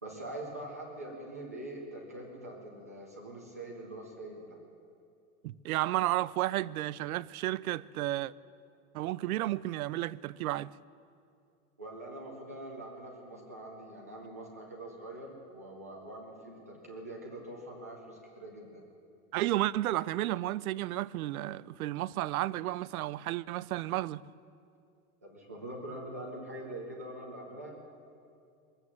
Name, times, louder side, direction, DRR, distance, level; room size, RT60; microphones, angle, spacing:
voice 1, 0.0-4.6 11.8-18.8 25.2-27.8, right 1 dB, 15° right, 0.3 m, -44 dB
voice 2, 5.4-8.3 8.9-10.7 19.3-24.2, right 15 dB, 75° right, 0.5 m, -32 dB
22.0 x 8.1 x 7.2 m
supercardioid pair, 180°, 44 cm